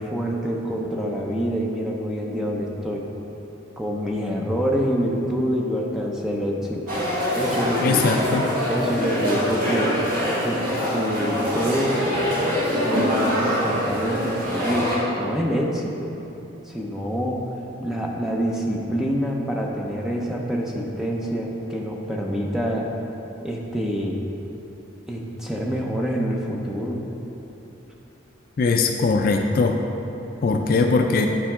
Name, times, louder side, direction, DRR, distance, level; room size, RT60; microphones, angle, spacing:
voice 1, 0.0-3.1 3.8-6.9 7.4-8.0 8.7-10.0 10.4-10.6 10.9-12.1 12.7-14.9 15.2-16.1 16.7-17.4 17.8-22.9 23.4-24.2 25.1-27.0, equal, ahead, -2 dB, 0.6 m, -26 dB
sound 1, 6.9-15.0, equal, 45° right, 1.4 m, -24 dB
voice 2, 7.8-8.5 28.6-29.8 30.4-31.3, left 4 dB, 45° left, 3 dB, 0.3 m, -20 dB
10.0 x 4.4 x 3.6 m, 3.0 s
head